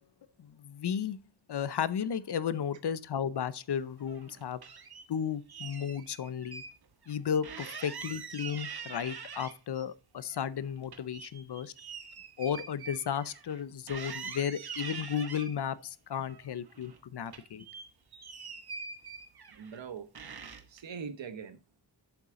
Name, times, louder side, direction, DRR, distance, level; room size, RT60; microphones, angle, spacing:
voice 1, 0.4-1.2 1.5-4.6 5.1-6.6 7.1-11.7 12.4-17.6, left 8 dB, 65° left, 0.7 m, -34 dB
sound 1, 4.0-5.1 5.5-6.7 7.0-7.1 7.4-9.8 10.2-13.6 13.9-15.5 16.1-17.0 17.3-19.8 20.1-20.8, right 5 dB, 60° right, 1.1 m, -44 dB
voice 2, 19.5-20.1 20.7-21.8, right 6 dB, 85° right, 1.1 m, -42 dB
8.1 x 7.1 x 3.7 m
wide cardioid pair, 130°, 43 cm